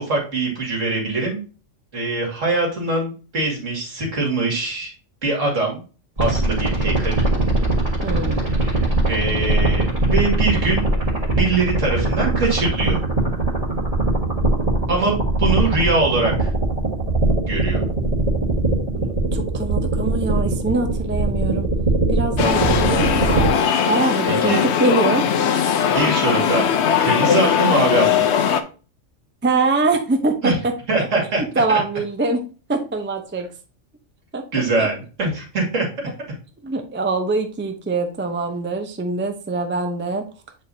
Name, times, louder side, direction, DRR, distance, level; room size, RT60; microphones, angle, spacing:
voice 1, 0.0-1.4 1.9-4.9 5.2-5.8 6.2-7.3 8.4-10.8 11.3-13.0 14.9-16.5 17.5-17.8 24.2-24.6 25.9-26.7 27.0-28.3 30.4-30.6 30.9-31.4 31.7-31.8 34.5-35.9, right 3 dB, 80° right, -1 dB, 2.5 m, -23 dB
sound 1, 6.2-23.5, right 2 dB, 30° right, 1.5 m, -21 dB
voice 2, 8.0-8.4 19.0-21.7 22.1-23.5 23.9-25.2 29.4-31.1 31.6-32.4 32.7-33.5 34.3-34.9 36.6-40.2, right 3 dB, 15° right, 5 dB, 0.5 m, -23 dB
sound 2, 22.4-28.6, left 8 dB, 65° left, 0.9 m, -19 dB
7.8 x 4.6 x 2.7 m, 0.36 s
omnidirectional pair, 1.3 m